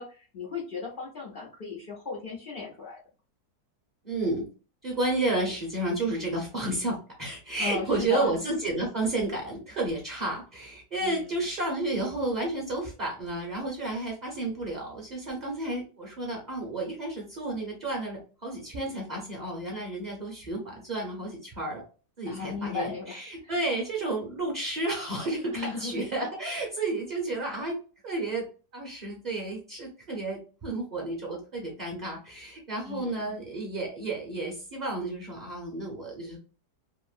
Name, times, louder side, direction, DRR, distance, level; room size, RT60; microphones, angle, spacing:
voice 1, 0.0-3.0 7.6-8.3 11.0-11.4 22.3-23.5 25.5-25.9 32.9-33.4, left 5 dB, 80° left, -4 dB, 0.4 m, -36 dB
voice 2, 4.0-4.4 4.8-21.8 22.2-27.8 28.0-28.4 28.7-36.4, right 2 dB, 40° right, -1 dB, 0.6 m, -31 dB
2.9 x 2.6 x 2.4 m, 0.36 s
omnidirectional pair, 1.7 m